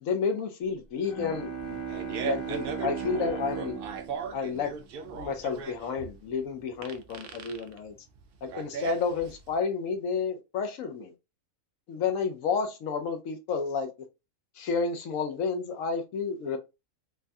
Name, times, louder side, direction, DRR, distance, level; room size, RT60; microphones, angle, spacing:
voice 1, 0.0-1.8 2.2-3.8 4.3-4.7 5.0-7.9 8.4-11.1 11.9-13.9 14.6-16.6, left 5 dB, 75° left, 1.0 m, -31 dB
Bowed string instrument, 0.9-5.5, right 6 dB, 40° left, 1.1 m, -38 dB
Fart, 1.6-9.5, right 6 dB, 75° right, 0.5 m, -38 dB
3.2 x 2.3 x 2.5 m
omnidirectional pair, 1.5 m